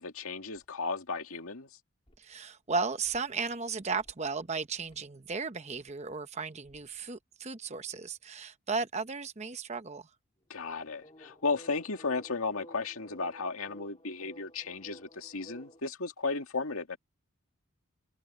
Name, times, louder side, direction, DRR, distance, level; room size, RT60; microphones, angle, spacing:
voice 1, 0.0-1.7 10.5-17.0, left 4 dB, 75° left, 2.1 m, -34 dB
sound 1, 0.6-0.7 2.1-2.2 3.0-3.6 4.0-4.4 4.8-5.0 5.7-5.9 6.7-7.0 10.6-15.8, equal, 25° left, 2.8 m, -54 dB
voice 2, 2.2-10.1, right 4 dB, 30° right, 0.8 m, -35 dB
head